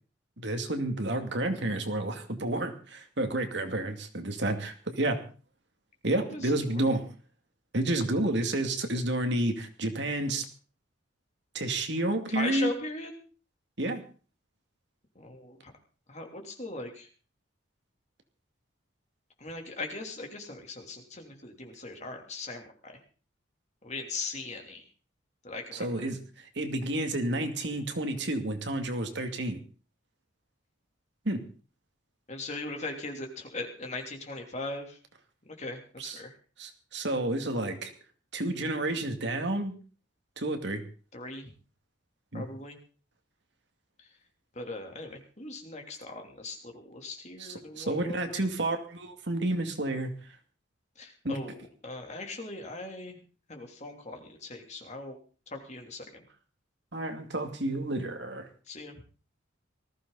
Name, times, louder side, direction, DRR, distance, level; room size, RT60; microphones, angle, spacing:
voice 1, 0.4-5.2 6.0-7.1 7.7-10.4 11.5-12.7 13.8-14.0 25.7-29.6 31.2-31.4 36.0-36.2 36.6-37.9 38.3-39.7 40.4-40.8 42.3-42.5 47.4-50.1 51.2-51.4 56.9-58.5, right 1 dB, 60° right, 6 dB, 2.4 m, -30 dB
voice 2, 12.3-13.1 15.1-15.7 16.1-17.1 19.4-22.9 23.8-24.8 25.4-26.1 32.3-35.0 35.5-36.3 41.1-41.5 42.3-42.8 44.5-48.4 51.0-53.2 53.5-55.2 55.5-56.2 58.7-58.9, left 2 dB, 35° left, 3 dB, 3.3 m, -39 dB
19.5 x 15.0 x 4.1 m, 0.38 s
head